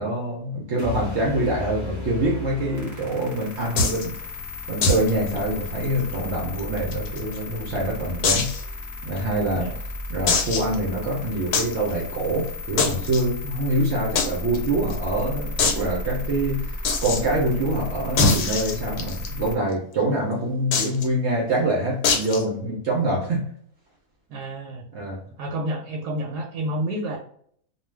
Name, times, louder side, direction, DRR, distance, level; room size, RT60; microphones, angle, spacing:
voice 1, 0.0-4.1 4.7-8.5 9.0-9.7 10.1-16.8 17.0-23.4 24.9-25.2, right 1 dB, 60° right, -2 dB, 0.8 m, -25 dB
sound 1, 0.8-3.8, left 3 dB, 25° left, 0.3 m, -35 dB
sound 2, 2.7-19.6, left 2 dB, 15° right, 0.8 m, -34 dB
sound 3, 3.8-4.0 4.8-5.1 5.4-5.5 5.8-5.9 6.6-7.4 8.2-8.6 9.2-9.3 10.3-10.8 11.5-11.7 12.8-13.2 14.2-14.3 14.5-14.6 14.9-15.0 15.6-15.8 16.8-17.2 18.2-19.3 20.7-21.0 22.0-22.4, left 4 dB, 80° left, 1.2 m, -22 dB
voice 2, 24.3-24.8 25.4-27.2, right 1 dB, 85° right, 1 dB, 1.1 m, -29 dB
2.5 x 2.4 x 3.1 m, 0.63 s
omnidirectional pair, 1.7 m